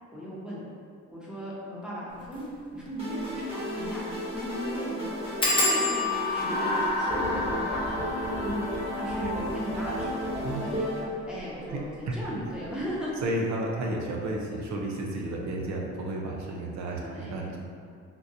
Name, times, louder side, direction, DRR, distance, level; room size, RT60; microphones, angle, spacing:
voice 1, 0.1-0.6 1.1-2.4 2.7-5.0 5.6-5.9 6.3-8.0 8.4-8.6 8.9-13.1 13.5-13.6 17.0-17.4, equal, 5° right, -8 dB, 1.0 m, -37 dB
sound 1, 2.2-2.4 2.9-3.0 3.2-3.3 3.8-4.1 4.3-4.4 5.4-10.7 11.4-11.9 12.2-12.5 12.8-12.9, left 2 dB, 15° left, 0.7 m, -31 dB
sound 2, 3.0-11.0, equal, 20° right, 1.2 m, -33 dB
sound 3, 5.7-10.2, left 1 dB, 80° left, 0.6 m, -33 dB
voice 2, 11.7-12.2 13.2-17.6, right 1 dB, 65° right, -1 dB, 0.6 m, -32 dB
3.8 x 2.5 x 2.7 m, 2.3 s
cardioid pair, 90°, 30 cm